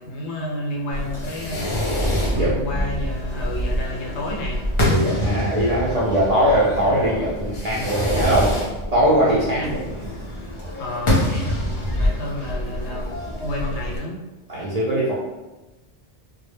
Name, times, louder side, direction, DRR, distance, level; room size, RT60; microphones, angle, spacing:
voice 1, 0.0-1.8 2.3-4.6 9.6-9.7 10.8-13.1 13.4-14.2, left 1 dB, 70° left, -2 dB, 0.8 m, -30 dB
Fireworks, 0.9-14.0, equal, 50° left, 0.4 m, -26 dB
voice 2, 4.9-8.7 8.9-9.8 14.5-15.2, equal, 55° right, -8 dB, 0.4 m, -20 dB
2.0 x 2.0 x 3.2 m, 1.1 s
omnidirectional pair, 1.2 m